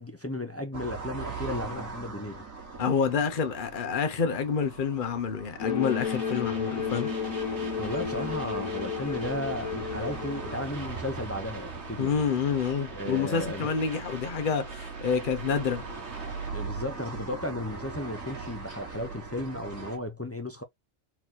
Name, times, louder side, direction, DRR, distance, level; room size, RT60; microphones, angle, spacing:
voice 1, 0.0-2.8 7.8-12.1 12.9-13.7 16.5-20.6, left 1 dB, 15° left, 0.6 m, -35 dB
sound 1, 0.7-20.0, right 4 dB, 75° right, 2.2 m, -41 dB
voice 2, 2.8-7.1 12.0-15.8, left 6 dB, 40° left, 1.0 m, -28 dB
sound 2, 5.6-10.7, left 7 dB, 85° left, 1.4 m, -32 dB
sound 3, 5.8-16.5, right 4 dB, 55° right, 1.7 m, -44 dB
4.2 x 4.1 x 2.9 m
omnidirectional pair, 1.4 m